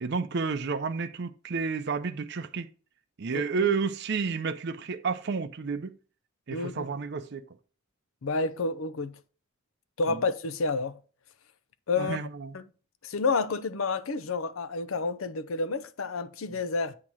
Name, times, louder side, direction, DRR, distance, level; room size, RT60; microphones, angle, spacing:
voice 1, 0.0-2.7 3.2-5.9 6.5-7.4 10.1-10.2 12.0-12.6, right 5 dB, 55° right, 0.5 m, -31 dB
voice 2, 6.5-6.9 8.2-9.2 10.0-11.0 11.9-12.2 12.5-12.6 13.0-17.0, left 4 dB, 85° left, 0.6 m, -29 dB
8.4 x 2.9 x 6.2 m
head